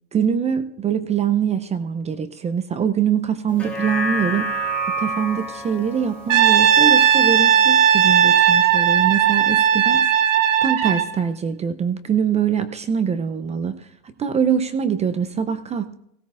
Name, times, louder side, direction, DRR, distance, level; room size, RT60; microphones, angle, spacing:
voice 1, 0.1-4.5 5.0-10.1 10.6-16.0, right 7 dB, 20° right, 12 dB, 0.5 m, -23 dB
sound 1, 3.5-8.1 8.5-8.6, right 1 dB, 5° left, 2.8 m, -29 dB
Brass instrument, 6.3-11.1, right 9 dB, 85° right, 1.7 m, -16 dB
18.0 x 15.5 x 2.4 m, 0.77 s
supercardioid pair, 120°, 36 cm